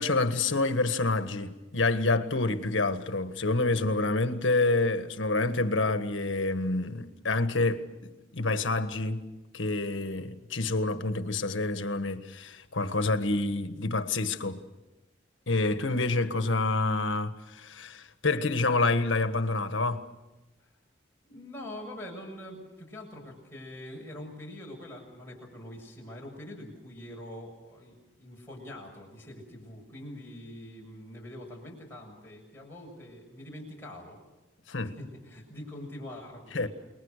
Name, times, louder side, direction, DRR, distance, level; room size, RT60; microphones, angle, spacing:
voice 1, 0.0-9.2 9.5-14.6 15.5-20.0 34.7-34.9 36.5-36.7, left 2 dB, 80° left, 1.6 m, -28 dB
voice 2, 21.3-34.2 34.8-36.7, left 1 dB, 10° left, 7.0 m, -44 dB
29.5 x 21.5 x 6.7 m
head